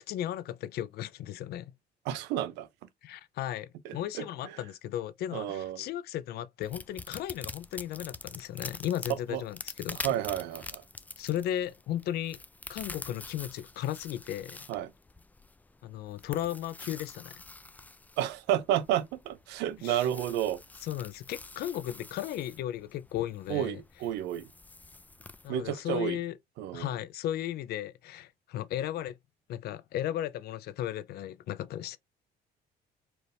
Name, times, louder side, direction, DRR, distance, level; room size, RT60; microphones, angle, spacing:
voice 1, 0.0-1.7 3.0-10.2 11.2-12.4 12.7-14.7 15.8-17.4 19.8-20.1 20.8-23.8 25.4-26.4 26.7-29.2 29.5-32.0, left 12 dB, 70° left, 0.5 m, -35 dB
voice 2, 2.1-2.7 3.8-4.2 5.3-5.8 9.3-9.4 10.0-10.8 14.7-14.9 18.2-20.6 23.5-24.5 25.5-26.2 26.6-26.9, right 11 dB, 90° right, 0.6 m, -31 dB
sound 1, 6.6-25.5, left 3 dB, 10° left, 0.3 m, -46 dB
4.5 x 2.6 x 3.3 m
cardioid pair, 110°, 17 cm